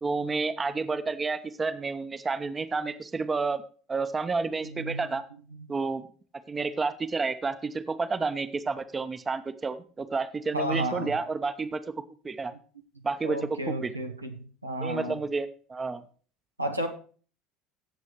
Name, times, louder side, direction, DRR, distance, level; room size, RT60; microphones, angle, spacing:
voice 1, 0.0-3.6 3.9-5.2 5.7-6.1 6.5-11.8 12.2-12.5 13.0-13.4 13.7-13.9 14.8-16.0, right 4 dB, 20° right, 12 dB, 0.8 m, -30 dB
voice 2, 4.6-5.1 5.5-5.7 10.5-11.1 13.2-15.2 16.6-16.9, right 1 dB, 85° right, 4 dB, 1.0 m, -32 dB
16.5 x 7.4 x 3.1 m, 0.41 s
figure-of-eight pair, 65°, 0 cm